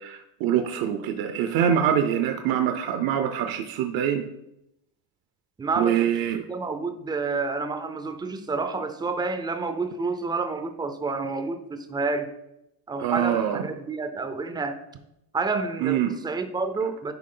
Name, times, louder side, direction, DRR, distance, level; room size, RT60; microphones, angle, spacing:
voice 1, 0.0-4.2 5.8-6.4 13.0-13.6 15.8-16.1, right 9 dB, 50° right, 6 dB, 0.7 m, -24 dB
voice 2, 5.6-6.1 6.4-12.3 12.9-14.8 15.3-17.1, right 4 dB, 10° right, 8 dB, 0.5 m, -29 dB
10.5 x 4.6 x 3.8 m, 0.86 s
cardioid pair, 135°, 46 cm